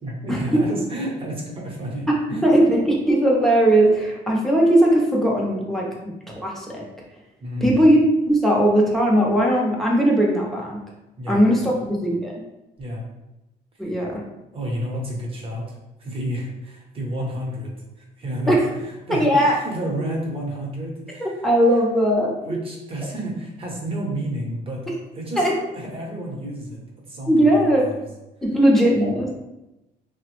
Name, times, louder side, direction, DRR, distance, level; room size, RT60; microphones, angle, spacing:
voice 1, 0.0-2.5 7.4-7.8 11.2-11.4 12.8-13.0 13.8-13.9 14.5-17.7 18.0-21.8 22.4-24.9 25.1-25.4 25.7-26.8 27.1-28.0, right 1 dB, 35° right, -1 dB, 0.9 m, -30 dB
voice 2, 2.4-6.1 6.4-6.8 7.6-8.0 8.2-10.8 11.3-11.7 12.0-12.3 13.8-14.2 18.5-18.6 19.1-19.6 21.2-22.6 25.4-25.5 27.3-27.9 28.4-29.3, right 1 dB, ahead, -3 dB, 0.7 m, -18 dB
3.3 x 2.1 x 3.0 m, 0.96 s
cardioid pair, 110°, 17 cm